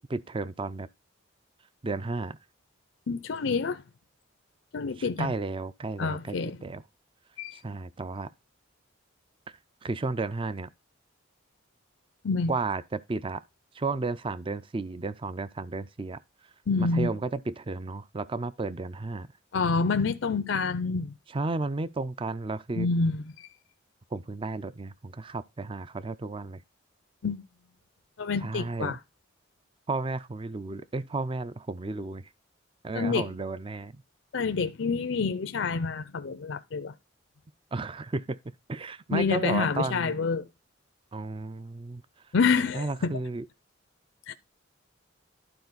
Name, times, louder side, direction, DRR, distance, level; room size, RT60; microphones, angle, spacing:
voice 1, 0.1-0.9 1.8-2.4 5.0-6.4 6.6-6.8 7.6-8.3 9.8-10.7 12.5-13.4 13.7-16.2 16.8-19.3 21.3-22.9 24.1-26.6 28.4-29.0 29.9-32.3 32.8-34.0 37.7-38.4 38.7-40.1 41.1-42.0 42.7-43.5, right 3 dB, 25° right, 0.4 m, -33 dB
voice 2, 3.1-3.8 4.7-5.3 6.0-6.6 7.4-7.6 12.2-12.5 16.7-17.1 19.5-21.1 22.7-23.5 27.2-27.4 28.2-29.0 33.0-33.3 34.3-36.9 39.1-40.5 42.3-43.1 44.3-44.4, left 4 dB, 70° left, 0.5 m, -27 dB
12.0 x 4.4 x 4.0 m
head